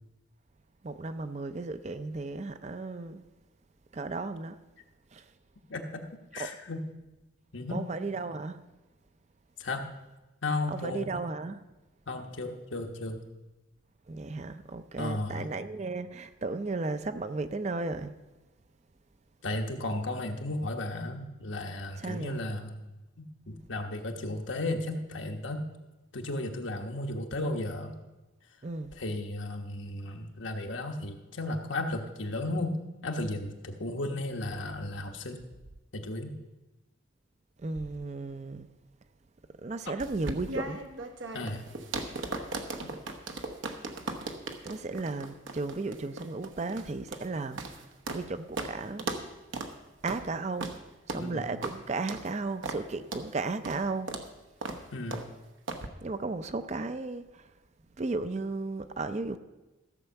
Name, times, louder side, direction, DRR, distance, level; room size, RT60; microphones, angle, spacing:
voice 1, 0.8-3.2 3.9-4.6 5.1-5.3 6.4-6.6 7.7-8.6 10.7-11.6 14.1-18.1 22.0-22.4 28.6-28.9 37.6-38.7 39.6-40.8 44.6-49.0 50.0-50.7 51.1-54.2 56.0-57.5 58.0-59.4, right 3 dB, 35° right, 0.4 m, -35 dB
voice 2, 5.7-6.0 6.3-6.8 7.5-7.9 9.6-9.9 10.4-11.2 12.1-13.2 15.0-15.5 19.4-22.8 23.2-25.7 26.1-27.9 29.0-35.4 35.9-36.3 41.3-41.6 51.2-51.5 54.9-55.2, left 2 dB, 75° left, 1.2 m, -34 dB
sound 1, 40.0-48.3 48.6-48.7 49.0-49.3 49.5-49.7 50.1-50.2 50.6-50.8 51.1-51.3 51.6-51.8 52.1-52.3 52.6-52.8 53.1-53.3 53.7-53.8 54.1-54.3 54.6-54.8 55.1-55.3 55.7-55.9, right 2 dB, 80° right, 1.0 m, -37 dB
14.5 x 5.5 x 7.0 m
head